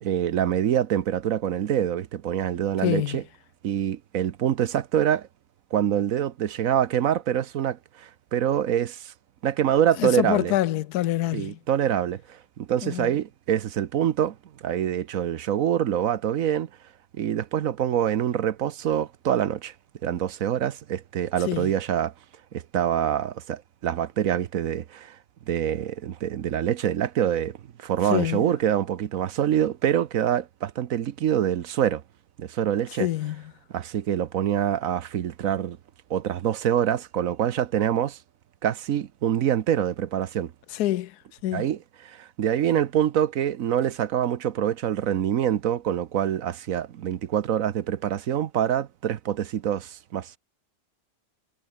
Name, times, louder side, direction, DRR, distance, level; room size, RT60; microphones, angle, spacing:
voice 1, 0.0-3.2 3.6-5.3 5.7-9.1 9.4-10.5 11.3-14.4 14.6-16.7 17.2-19.7 20.0-22.1 22.5-25.2 25.5-32.0 32.4-33.1 33.7-35.8 36.1-38.2 38.6-40.5 41.5-50.4, right 10 dB, 65° right, 1.2 m, -25 dB
voice 2, 2.8-3.2 10.0-11.6 12.8-13.1 21.5-21.7 28.1-28.5 33.0-33.4 40.7-41.1 41.4-41.7, left 14 dB, 80° left, 1.2 m, -26 dB
omnidirectional pair, 1.6 m